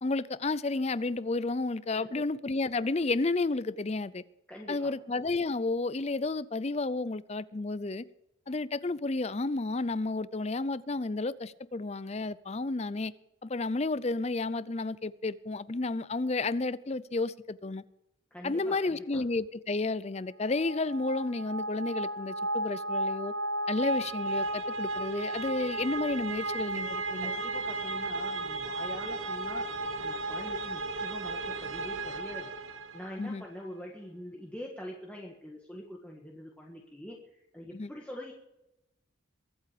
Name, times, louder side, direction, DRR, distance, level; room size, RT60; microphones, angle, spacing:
voice 1, 0.0-4.2 4.7-8.0 8.5-13.1 13.4-17.8 18.4-23.3 23.7-27.3 33.2-33.4 37.7-37.9, left 3 dB, 30° left, 17 dB, 0.5 m, -31 dB
voice 2, 4.5-4.9 18.3-19.2 27.2-29.6 30.0-32.5 32.9-38.3, equal, 5° left, -1 dB, 1.5 m, -44 dB
sound 1, 20.5-33.3, right 2 dB, 80° right, 1.4 m, -34 dB
23.0 x 8.5 x 5.0 m, 0.88 s
head